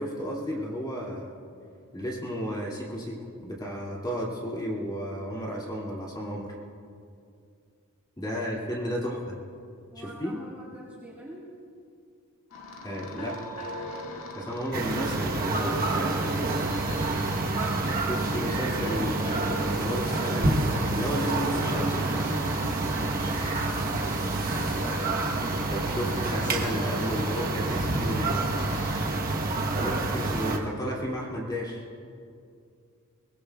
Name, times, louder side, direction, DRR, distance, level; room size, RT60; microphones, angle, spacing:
voice 1, 0.0-1.3 1.9-6.5 8.2-9.4 10.0-10.4 12.8-13.4 14.3-16.7 18.0-22.5 25.7-28.8 29.7-31.8, equal, 20° left, -4 dB, 2.4 m, -33 dB
voice 2, 8.3-9.2 9.9-11.5, equal, 10° right, -7 dB, 2.0 m, -47 dB
sound 1, 12.5-29.1, left 2 dB, 65° left, 1.8 m, -41 dB
sound 2, 14.7-30.6, right 2 dB, 40° right, 1.1 m, -28 dB
22.5 x 19.5 x 2.3 m, 2.4 s
head